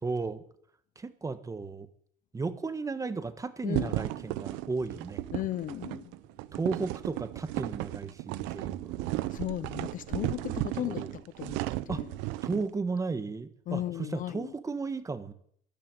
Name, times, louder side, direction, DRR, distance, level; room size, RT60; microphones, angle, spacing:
voice 1, 0.0-0.4 1.0-1.9 2.3-5.2 6.5-9.1 10.9-11.1 11.9-12.0 12.4-15.3, right 4 dB, 15° right, 1.3 m, -34 dB
voice 2, 3.6-4.0 5.3-6.1 9.3-12.1 13.7-14.5, left 13 dB, 45° left, 0.6 m, -36 dB
sound 1, 3.7-12.7, right 17 dB, 85° right, 0.7 m, -35 dB
14.0 x 11.0 x 9.1 m
cardioid pair, 135°, 19 cm